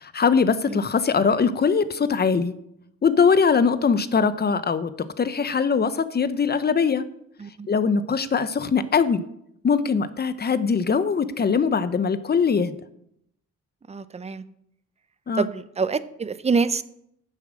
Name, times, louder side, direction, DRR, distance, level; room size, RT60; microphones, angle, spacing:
voice 1, 0.0-2.5 3.0-7.0 7.7-9.2 9.6-12.7 15.3-15.5, left 5 dB, 35° left, 13 dB, 0.9 m, -21 dB
voice 2, 13.9-14.4 15.3-16.8, right 4 dB, 20° right, 14 dB, 0.7 m, -26 dB
10.0 x 7.3 x 6.3 m, 0.75 s
cardioid pair, 90°, 30 cm